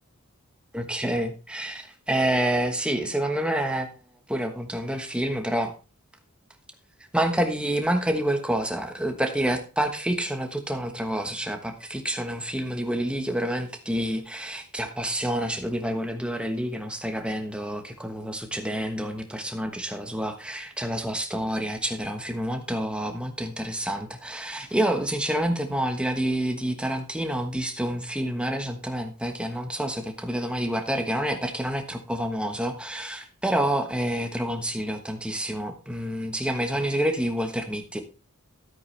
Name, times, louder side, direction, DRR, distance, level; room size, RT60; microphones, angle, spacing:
voice 1, 0.7-3.9 4.3-5.7 7.1-38.0, right 1 dB, 5° right, 5 dB, 1.2 m, -28 dB
12.5 x 8.5 x 3.3 m, 0.34 s
head